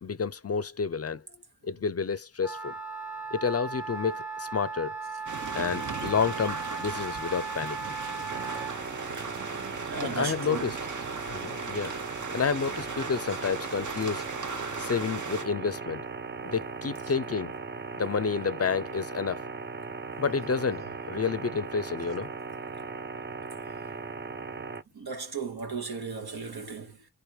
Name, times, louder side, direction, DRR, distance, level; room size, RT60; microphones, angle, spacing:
voice 1, 0.0-1.2 1.6-2.7 3.3-4.9 5.5-7.8 8.1-8.2 10.0-10.8 11.3-11.9 12.3-14.2 14.8-16.0 16.5-17.5 18.0-19.4 20.2-22.3, left 5 dB, 40° left, 0.5 m, -30 dB
Wind instrument woodwind instrument, 2.4-8.8, right 4 dB, ahead, 1.3 m, -37 dB
sound 1, 5.3-15.4, right 4 dB, 50° right, 0.9 m, -38 dB
sound 2, 8.3-24.8, right 4 dB, 30° right, 0.5 m, -38 dB
voice 2, 9.9-10.8 16.4-16.6 20.7-20.9 24.9-27.1, right 4 dB, 75° right, 1.2 m, -36 dB
3.4 x 3.4 x 4.7 m
cardioid pair, 45°, 38 cm